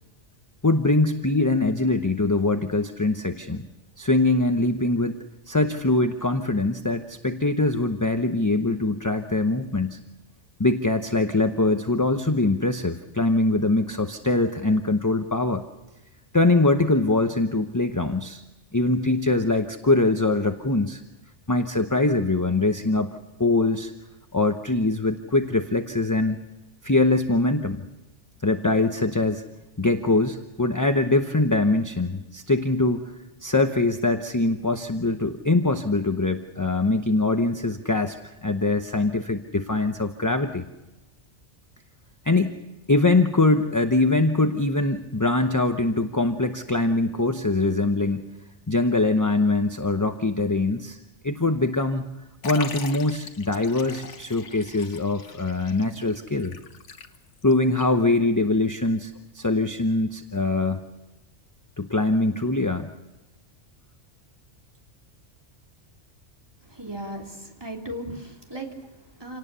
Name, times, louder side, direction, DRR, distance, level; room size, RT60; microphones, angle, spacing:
voice 1, 0.6-3.7 4.0-5.2 5.5-10.0 10.6-15.6 16.3-18.4 18.7-21.0 21.5-23.9 24.3-26.4 26.8-27.8 28.4-29.4 29.8-33.0 33.4-40.7 42.2-42.5 42.9-48.2 48.7-51.0 51.2-52.0 52.4-56.6 57.4-60.8 61.8-62.9, left 2 dB, 15° left, 7 dB, 0.8 m, -23 dB
Liquid, 52.4-57.5 57.8-57.9 58.8-58.9, left 5 dB, 80° left, 1.5 m, -40 dB
voice 2, 66.6-69.4, right 1 dB, 20° right, 0 dB, 3.3 m, -37 dB
27.5 x 18.5 x 6.9 m, 1.0 s
omnidirectional pair, 1.2 m